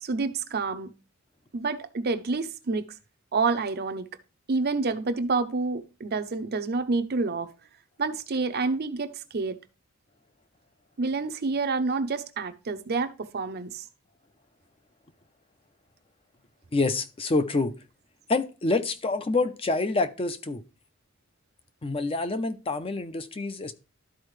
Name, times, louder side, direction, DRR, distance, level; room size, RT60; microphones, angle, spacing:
voice 1, 0.0-0.9 1.5-2.8 3.3-4.1 4.5-7.5 8.0-9.6 11.0-13.8, right 4 dB, 50° right, 0.6 m, -28 dB
voice 2, 16.7-17.7 18.3-20.6 21.8-23.7, left 3 dB, 25° left, 0.6 m, -27 dB
12.5 x 4.4 x 3.2 m
head